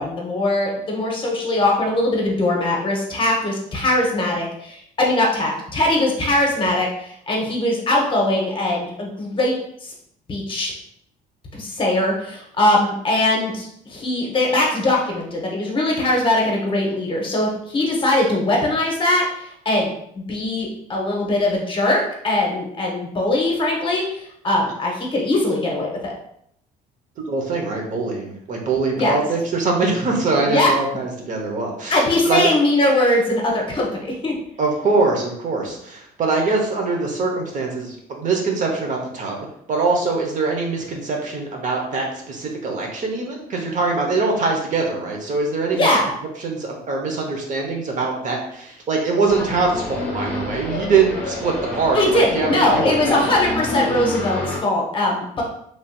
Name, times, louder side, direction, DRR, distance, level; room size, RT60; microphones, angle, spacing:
voice 1, 0.0-9.5 9.8-9.9 10.3-10.7 11.5-26.1 29.0-29.2 30.5-30.7 31.9-34.3 45.7-46.1 51.9-55.4, left 1 dB, 30° left, -1 dB, 0.9 m, -21 dB
voice 2, 27.3-32.5 34.6-45.9 46.4-53.2, right 3 dB, 50° right, 1 dB, 0.7 m, -23 dB
sound 1, 49.3-54.6, left 1 dB, 10° left, 1.2 m, -28 dB
3.2 x 2.7 x 2.2 m, 0.71 s
cardioid pair, 110°, 17 cm